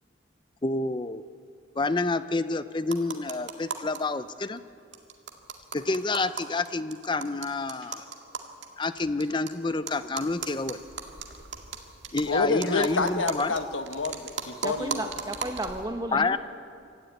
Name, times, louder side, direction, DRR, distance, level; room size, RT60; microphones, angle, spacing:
voice 1, 0.6-1.2 1.7-4.6 5.7-8.0 8.8-10.8 12.1-13.5 16.1-16.4, left 3 dB, 25° left, 13 dB, 0.6 m, -28 dB
sound 1, 2.8-4.0 4.3-4.4 4.6-4.7 4.9-9.5 9.9-15.9, right 5 dB, 70° right, 2.0 m, -38 dB
voice 2, 12.3-15.1, left 3 dB, 90° left, 8 dB, 1.3 m, -28 dB
voice 3, 14.6-16.4, right 1 dB, 20° right, 5 dB, 1.6 m, -33 dB
25.0 x 14.0 x 9.5 m, 2.4 s
head